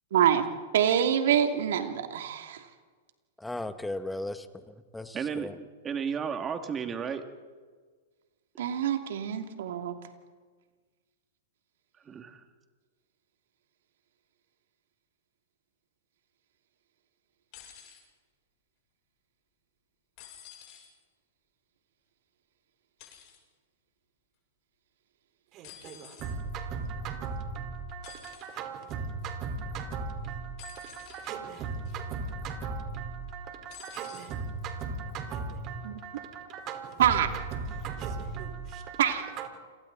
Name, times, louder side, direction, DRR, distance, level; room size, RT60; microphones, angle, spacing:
voice 1, 0.1-0.4 0.7-2.6 8.6-9.9 35.8-36.0 37.0-37.3 39.0-39.3, right 9 dB, 65° right, 2.9 m, -25 dB
voice 2, 3.4-5.5, left 2 dB, 5° left, 1.6 m, -37 dB
voice 3, 5.1-7.2 12.1-12.4, right 7 dB, 25° right, 2.5 m, -33 dB
sound 1, 17.5-18.0 20.2-20.9 23.0-23.4 25.6-26.3 28.0-28.5 30.6-31.3 31.8-32.2 33.7-34.3 35.3-35.4, left 10 dB, 45° left, 7.7 m, -50 dB
voice 4, 25.5-39.5, right 4 dB, 40° right, 4.7 m, -37 dB
29.5 x 27.0 x 4.2 m
hypercardioid pair, 110°, 0 cm